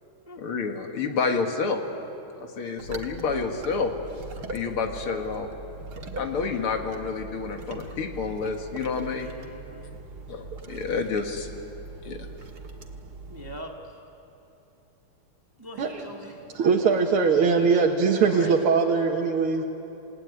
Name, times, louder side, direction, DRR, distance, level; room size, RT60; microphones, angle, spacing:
voice 1, 0.4-1.8 2.4-3.9 4.5-5.5 6.2-9.3 10.3-11.5 12.1-12.3, left 5 dB, 85° left, 4 dB, 2.7 m, -29 dB
sound 1, 2.8-13.6, right 2 dB, 50° right, 2.1 m, -40 dB
voice 2, 9.2-10.0 13.3-13.7 15.6-16.4 18.2-18.5, equal, 10° right, 1 dB, 1.6 m, -41 dB
voice 3, 16.5-19.6, right 5 dB, 90° right, 0 dB, 2.3 m, -21 dB
28.0 x 17.5 x 9.7 m, 2.9 s
omnidirectional pair, 2.3 m